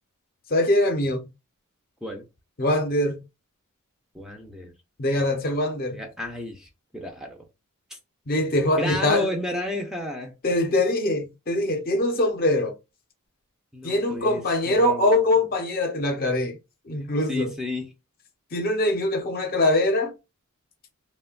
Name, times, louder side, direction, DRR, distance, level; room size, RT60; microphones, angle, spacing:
voice 1, 0.5-1.3 2.6-3.2 5.0-6.0 8.3-9.3 10.4-12.7 13.8-16.6 16.8-17.5 18.5-20.1, left 1 dB, 45° left, 0.6 m, -23 dB
voice 2, 4.1-4.7 5.9-7.5 7.9-8.0 8.8-10.3 13.7-15.2 17.3-17.9, left 1 dB, ahead, 0.4 m, -32 dB
3.1 x 2.1 x 2.3 m
head